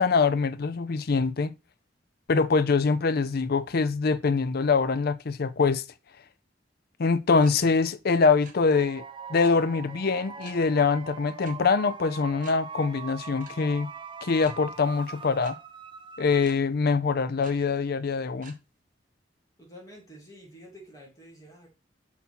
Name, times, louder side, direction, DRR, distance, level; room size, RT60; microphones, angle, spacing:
voice 1, 0.0-1.5 2.3-5.8 7.0-9.0 9.3-13.9 14.2-15.6 16.2-18.5, left 4 dB, 55° left, 0.5 m, -24 dB
sound 1, 7.4-7.5 7.8-8.5 9.4-9.5 10.4-10.6 11.4-11.5 11.9-12.0 12.4-12.5 13.4-13.5 14.4-14.5 15.4-15.5 16.4-16.5 17.4-17.5 18.4-18.5, right 5 dB, 50° right, 1.4 m, -48 dB
sound 2, 8.7-16.8, right 5 dB, 25° right, 0.5 m, -42 dB
voice 2, 19.6-21.7, equal, 20° left, 3.1 m, -49 dB
5.9 x 5.7 x 4.2 m
head